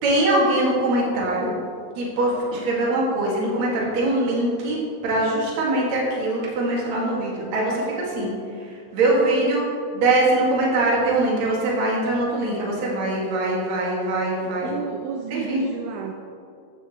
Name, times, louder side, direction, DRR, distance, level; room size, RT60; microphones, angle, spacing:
voice 1, 0.0-1.6 2.0-9.6 9.9-14.7 15.3-15.6, right 2 dB, 45° right, -4 dB, 2.7 m, -22 dB
voice 2, 9.3-9.8 14.3-16.1, right 6 dB, 80° right, 2 dB, 2.9 m, -32 dB
14.0 x 10.5 x 3.2 m, 2.4 s
omnidirectional pair, 5.9 m